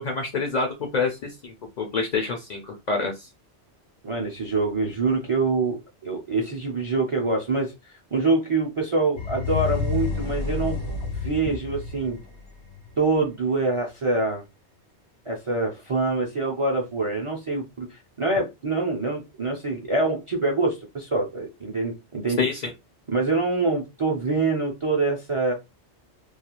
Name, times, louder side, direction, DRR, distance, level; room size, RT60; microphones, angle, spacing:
voice 1, 0.0-3.3 22.4-22.6, left 4 dB, 55° left, 3 dB, 0.5 m, -27 dB
voice 2, 4.0-7.7 8.1-10.8 11.2-12.2 13.0-14.4 15.3-22.4 23.1-25.5, right 3 dB, 45° right, 0 dB, 0.4 m, -25 dB
sound 1, 9.2-13.1, left 5 dB, 70° left, 1.0 m, -29 dB
2.4 x 2.3 x 2.8 m, 0.24 s
omnidirectional pair, 1.2 m